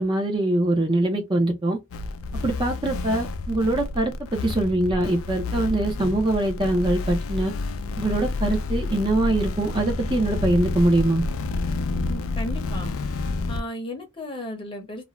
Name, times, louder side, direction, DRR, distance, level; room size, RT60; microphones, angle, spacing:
voice 1, 0.0-1.8 2.4-7.5 8.0-11.2, right 1 dB, 25° right, 0.5 m, -23 dB
sound 1, 1.9-13.6, left 3 dB, 80° left, 0.4 m, -29 dB
voice 2, 12.1-12.9 13.5-15.0, left 1 dB, 25° left, 0.8 m, -34 dB
2.5 x 2.1 x 2.9 m
head